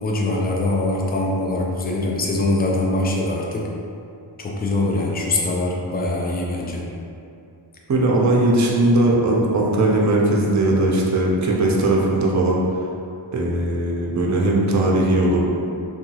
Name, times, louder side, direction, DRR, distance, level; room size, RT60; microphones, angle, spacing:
voice 1, 0.0-3.7 4.4-6.8, left 2 dB, 25° left, -2 dB, 0.3 m, -23 dB
voice 2, 7.9-12.6 13.3-15.5, right 1 dB, 40° right, -2 dB, 0.4 m, -19 dB
2.7 x 2.3 x 2.8 m, 2.6 s
wide cardioid pair, 55°, 48 cm